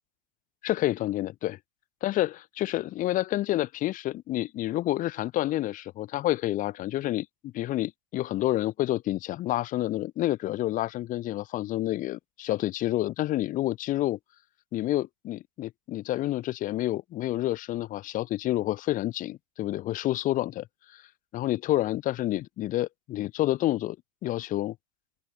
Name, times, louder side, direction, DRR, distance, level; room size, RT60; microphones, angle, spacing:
voice 1, 0.6-1.6 2.0-14.2 14.7-21.0 21.3-24.0 24.2-24.8, left 15 dB, 40° left, 2.3 m, -29 dB
open air
hypercardioid pair, 120°, 21 cm